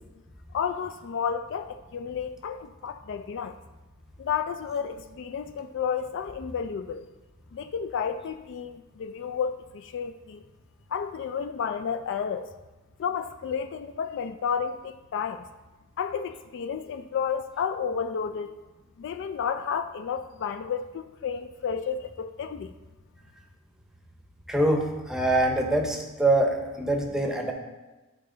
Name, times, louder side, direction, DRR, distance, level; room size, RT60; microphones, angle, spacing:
voice 1, 0.5-3.6 4.2-7.0 7.5-10.4 10.9-12.5 13.0-15.5 16.0-18.6 19.0-22.7, left 7 dB, 55° left, 10 dB, 0.3 m, -31 dB
voice 2, 24.5-27.5, right 1 dB, 5° right, 2 dB, 0.8 m, -24 dB
10.5 x 4.2 x 3.8 m, 1.1 s
head